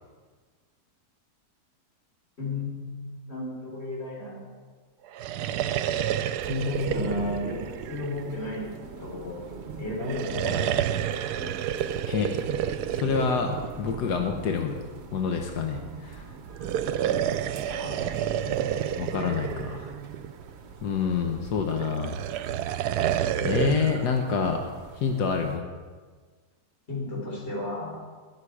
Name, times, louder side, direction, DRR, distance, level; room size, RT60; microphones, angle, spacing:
voice 1, 2.4-4.5 6.5-8.7 9.0-9.4 9.8-10.8 17.0-18.2 26.9-28.0, left 2 dB, 40° left, -5 dB, 4.6 m, -33 dB
sound 1, 5.1-8.7 10.0-14.3 16.5-20.5 21.8-24.1, right 10 dB, 80° right, 1.1 m, -29 dB
sound 2, 6.3-25.6, right 4 dB, 50° right, 1.0 m, -43 dB
voice 2, 12.9-14.8 15.1-16.2 19.0-19.9 20.8-22.2 23.4-25.6, left 5 dB, 90° left, 4 dB, 1.5 m, -27 dB
20.0 x 7.4 x 4.8 m, 1.5 s
omnidirectional pair, 1.7 m